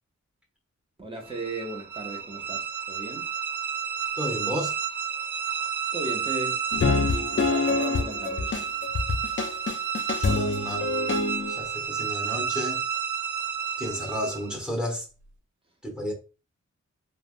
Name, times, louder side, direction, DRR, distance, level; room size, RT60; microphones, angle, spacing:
voice 1, 1.0-3.3 5.9-8.6, right 2 dB, 20° right, 0.7 m, -36 dB
sound 1, 1.3-14.6, right 7 dB, 80° right, 0.5 m, -31 dB
voice 2, 4.1-4.8 10.2-10.9 11.5-12.9 13.8-15.1 15.8-16.1, equal, 5° right, 1.1 m, -32 dB
sound 2, 6.7-11.6, left 4 dB, 40° left, 0.5 m, -26 dB
3.3 x 2.1 x 2.5 m
wide cardioid pair, 70°, 30 cm